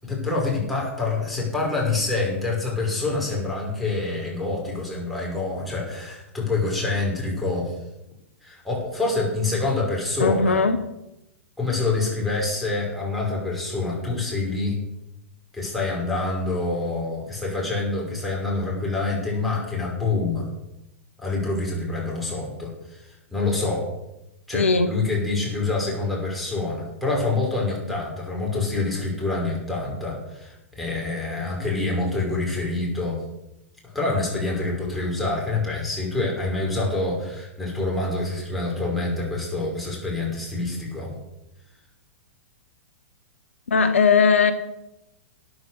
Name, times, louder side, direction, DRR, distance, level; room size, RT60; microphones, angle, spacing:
voice 1, 0.0-7.8 8.4-10.6 11.6-14.9 15.5-20.5 21.2-23.9 24.5-33.2 33.8-41.1, left 3 dB, ahead, -4 dB, 5.9 m, -26 dB
voice 2, 10.2-10.8 24.5-24.9 43.7-44.5, left 5 dB, 70° left, 10 dB, 1.1 m, -18 dB
13.0 x 9.3 x 6.9 m, 0.90 s
figure-of-eight pair, 105°, 7 cm